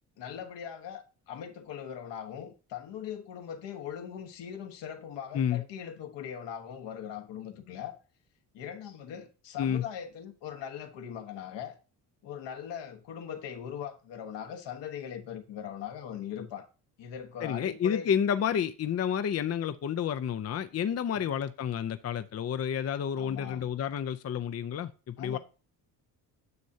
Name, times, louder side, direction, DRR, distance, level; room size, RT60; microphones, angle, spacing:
voice 1, 0.2-8.0 8.5-11.7 12.2-16.7 17.0-18.1 21.1-21.2 23.1-23.7 25.2-25.4, left 8 dB, 70° left, 1.3 m, -40 dB
voice 2, 17.4-25.4, left 8 dB, 35° left, 0.6 m, -30 dB
9.4 x 6.3 x 2.8 m
supercardioid pair, 65°, 44 cm